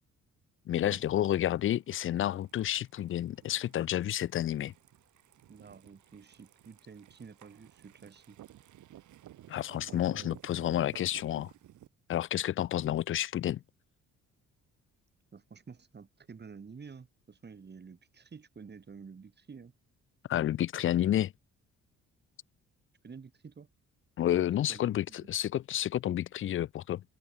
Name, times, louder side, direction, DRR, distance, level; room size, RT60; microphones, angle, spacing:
voice 1, 0.7-4.7 9.5-11.5 12.1-13.6 20.3-21.3 24.2-27.0, left 12 dB, 45° left, 0.4 m, -30 dB
sound 1, 1.0-11.9, right 13 dB, 75° right, 2.6 m, -56 dB
voice 2, 5.5-8.4 9.9-10.4 15.3-19.7 23.0-23.7 24.6-25.3, right 5 dB, 35° right, 3.4 m, -50 dB
open air
cardioid pair, 90°, 30 cm